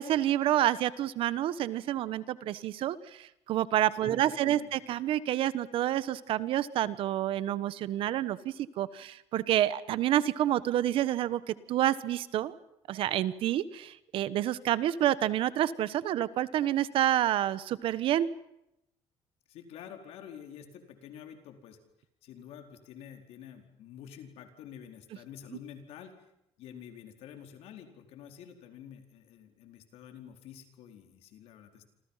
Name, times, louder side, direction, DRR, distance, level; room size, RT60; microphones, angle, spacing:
voice 1, 0.0-12.5 12.9-18.3, right 12 dB, 55° right, 16 dB, 1.3 m, -28 dB
voice 2, 3.9-4.7 19.5-21.8 22.2-26.1 26.6-31.8, left 9 dB, 70° left, 6 dB, 4.6 m, -48 dB
28.5 x 26.5 x 5.8 m, 0.82 s
cardioid pair, 175°, 11 cm